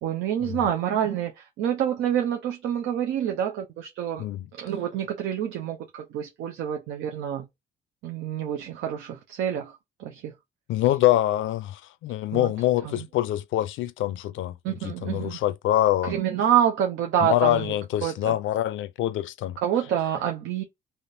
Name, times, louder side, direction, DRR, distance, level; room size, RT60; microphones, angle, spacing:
voice 1, 0.0-4.2 4.6-7.5 8.0-10.3 12.3-12.5 12.9-13.1 14.6-15.4 16.0-17.7 18.0-18.3 19.6-20.6, right 10 dB, 85° right, 0.6 m, -27 dB
voice 2, 10.7-16.1 17.2-19.6, left 14 dB, 80° left, 0.4 m, -25 dB
3.4 x 2.7 x 2.6 m
cardioid pair, 90°, 20 cm